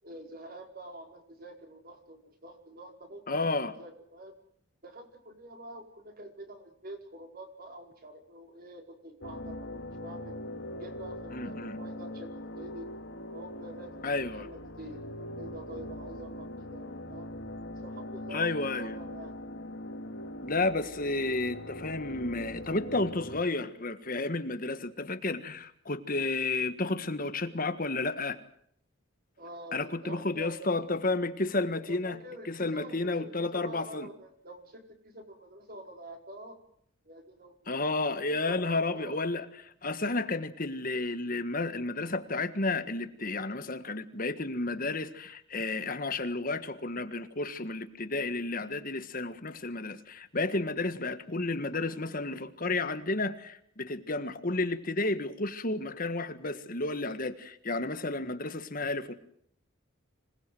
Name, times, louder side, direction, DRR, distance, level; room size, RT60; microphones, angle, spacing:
voice 1, 0.0-3.5 3.8-4.3 4.8-10.4 10.8-12.9 13.3-17.3 17.8-19.3 29.4-30.8 31.9-36.6 37.0-37.8 38.3-39.2, right 1 dB, 45° right, 4 dB, 4.9 m, -47 dB
voice 2, 3.3-3.7 11.3-11.8 14.0-14.5 18.3-19.0 20.4-28.4 29.7-32.2 32.5-34.1 37.7-59.1, left 2 dB, 45° left, 10 dB, 1.6 m, -32 dB
sound 1, 9.2-23.4, left 1 dB, 60° left, 2.2 m, -41 dB
26.0 x 20.0 x 7.8 m, 0.66 s
head